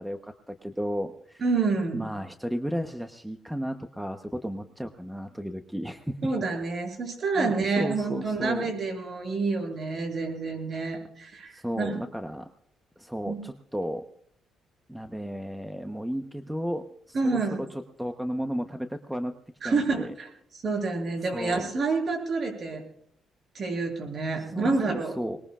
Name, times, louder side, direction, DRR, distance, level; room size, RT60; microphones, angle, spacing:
voice 1, 0.0-1.4 1.9-6.2 7.4-8.7 11.5-12.5 13.0-14.0 14.9-16.8 17.3-17.7 18.0-19.3 19.6-20.1 21.3-21.7 24.5-25.4, equal, 5° right, 6 dB, 1.0 m, -33 dB
voice 2, 1.4-2.1 6.2-12.0 13.3-13.4 17.1-17.6 19.6-20.3 20.6-22.8 23.5-25.2, right 4 dB, 45° right, 2 dB, 7.9 m, -28 dB
23.0 x 21.0 x 2.5 m, 0.66 s
cardioid pair, 90°, 0 cm